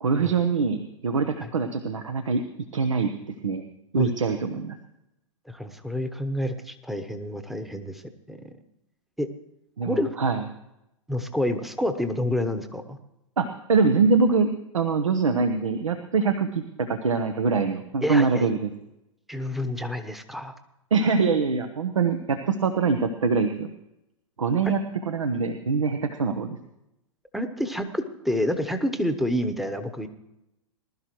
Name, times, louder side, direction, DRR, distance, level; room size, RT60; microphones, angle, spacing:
voice 1, 0.0-2.4 2.7-3.1 3.4-3.6 3.9-4.8 9.8-10.4 13.4-14.5 14.7-18.7 20.9-23.7 24.4-24.8 25.1-26.6, right 4 dB, 75° right, 8 dB, 0.9 m, -24 dB
voice 2, 5.5-8.0 8.3-8.5 9.2-9.3 9.8-10.1 11.1-13.0 18.0-18.5 19.3-20.5 24.6-24.7 27.3-30.1, left 1 dB, ahead, 8 dB, 1.0 m, -28 dB
20.5 x 12.0 x 3.1 m, 0.86 s
figure-of-eight pair, 105°, 16 cm